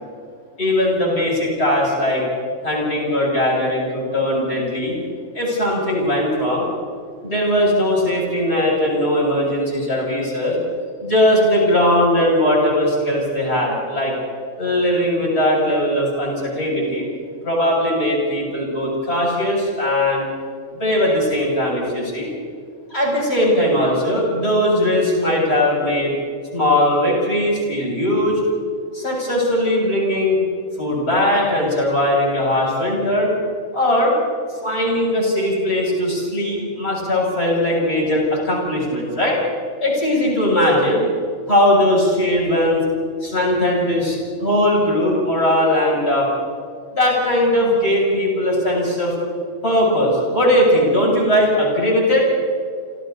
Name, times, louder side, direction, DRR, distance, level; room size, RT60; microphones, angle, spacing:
voice 1, 0.6-2.2 2.6-5.0 5.3-6.7 7.2-10.6 11.0-14.1 14.6-17.1 17.4-20.3 20.7-22.3 22.9-26.1 26.5-28.4 28.9-30.4 30.8-33.3 33.7-34.1 34.6-39.4 39.8-41.0 41.5-42.8 43.2-46.3 46.9-49.1 49.6-52.3, left 1 dB, 50° left, -3 dB, 8.1 m, -19 dB
28.5 x 28.0 x 4.1 m, 2.2 s
omnidirectional pair, 1.4 m